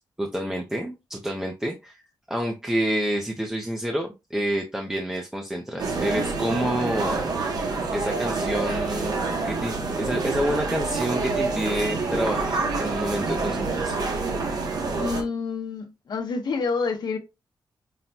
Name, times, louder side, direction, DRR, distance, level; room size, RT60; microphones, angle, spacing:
voice 1, 0.2-2.0 2.3-9.2 9.4-14.0, equal, 5° right, 0.6 m, -28 dB
sound 1, 5.8-15.2, right 3 dB, 60° right, 0.9 m, -27 dB
voice 2, 14.9-17.2, left 4 dB, 65° left, 0.9 m, -28 dB
5.6 x 2.1 x 2.7 m
cardioid pair, 105°, 8 cm